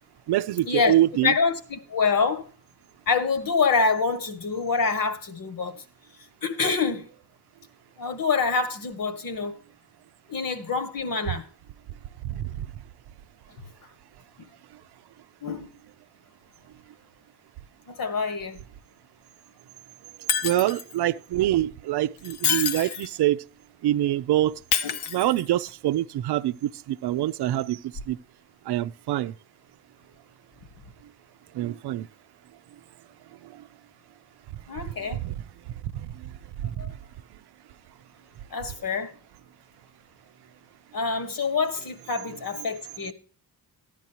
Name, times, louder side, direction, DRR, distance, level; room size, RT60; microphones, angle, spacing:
voice 1, 0.3-1.3 12.2-12.6 20.4-23.4 23.8-24.6 25.1-28.2 28.7-29.3 31.5-32.1 33.4-33.5 35.1-35.3 35.9-36.3 36.6-36.8, right 14 dB, 90° right, 0.6 m, -25 dB
voice 2, 1.2-2.5 3.1-5.8 6.4-7.1 8.0-9.6 10.3-11.5 13.6-13.7 14.4-14.5 15.4-15.7 17.9-18.6 24.8-25.0 34.7-35.2 36.8-36.9 38.5-39.1 40.9-43.1, left 5 dB, 60° left, 1.8 m, -26 dB
Shatter, 20.3-21.0 22.2-23.2 24.7-25.7 27.9-28.1, left 8 dB, 85° left, 1.0 m, -28 dB
13.5 x 10.0 x 2.9 m
cardioid pair, 115°, 39 cm